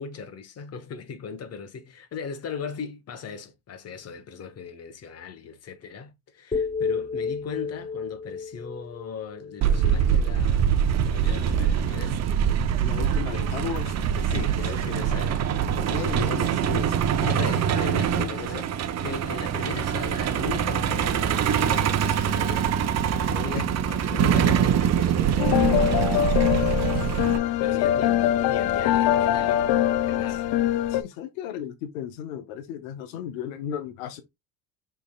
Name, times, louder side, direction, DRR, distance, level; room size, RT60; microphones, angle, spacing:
voice 1, 0.0-12.2 13.3-13.5 14.2-15.5 16.1-16.4 17.2-18.7 19.0-22.7 23.3-25.9 27.1-29.7 30.0-30.6, left 6 dB, 40° left, 1.2 m, -38 dB
sound 1, 6.5-10.6, left 5 dB, 15° left, 0.6 m, -32 dB
Truck, 9.6-27.4, right 8 dB, 40° right, 0.7 m, -24 dB
voice 2, 12.8-14.5 15.1-15.2 15.7-17.5 18.1-18.7 23.5-23.6 27.8-28.1 30.3-30.4 30.9-34.2, left 9 dB, 85° left, 0.8 m, -35 dB
sound 2, 25.4-31.0, left 12 dB, 65° left, 0.6 m, -23 dB
5.2 x 3.5 x 2.3 m
supercardioid pair, 95°, 40 cm